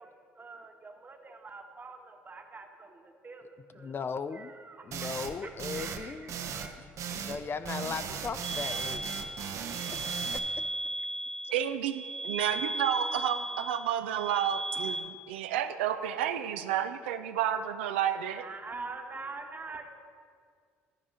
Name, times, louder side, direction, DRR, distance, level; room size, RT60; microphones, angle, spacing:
voice 1, 0.0-4.0 4.3-5.1 5.4-6.8 18.3-19.9, right 3 dB, 30° right, 4 dB, 1.1 m, -45 dB
voice 2, 3.8-4.5 4.8-6.3 7.1-9.2 9.9-10.0, left 5 dB, 40° left, 12 dB, 0.4 m, -37 dB
sound 1, 4.9-5.3 5.6-6.0 6.3-6.7 7.0-7.4 7.6-10.4, right 7 dB, 60° right, 0.7 m, -37 dB
sound 2, 8.4-15.0, right 1 dB, 10° left, 0.9 m, -36 dB
voice 3, 11.5-18.4, right 10 dB, 90° right, 9 dB, 0.3 m, -31 dB
10.0 x 4.8 x 5.5 m, 2.1 s
hypercardioid pair, 60°, 6 cm